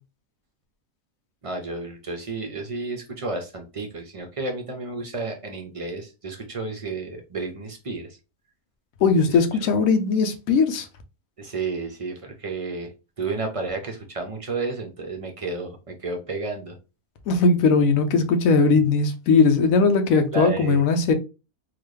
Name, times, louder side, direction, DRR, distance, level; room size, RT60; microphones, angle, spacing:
voice 1, 1.4-8.1 11.4-12.9 13.2-16.8 20.3-20.8, right 3 dB, 45° right, 0.4 m, -31 dB
voice 2, 9.0-10.9 17.3-21.1, left 4 dB, 70° left, 1.1 m, -19 dB
3.9 x 2.4 x 3.2 m
omnidirectional pair, 1.6 m